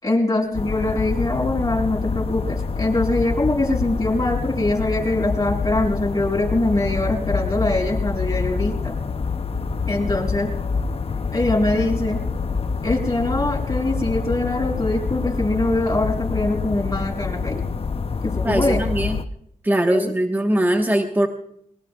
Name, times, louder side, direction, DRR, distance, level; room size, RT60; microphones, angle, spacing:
voice 1, 0.0-8.9 9.9-10.5 11.3-12.2 12.8-17.6 18.2-18.8 19.8-20.1, left 2 dB, 25° left, -2 dB, 7.0 m, -23 dB
sound 1, 0.5-19.2, left 5 dB, 45° left, 0.7 m, -26 dB
voice 2, 18.4-19.2 19.6-21.3, right 1 dB, 15° right, 3 dB, 1.4 m, -20 dB
26.0 x 23.0 x 2.4 m, 0.75 s
cardioid pair, 75°, 13 cm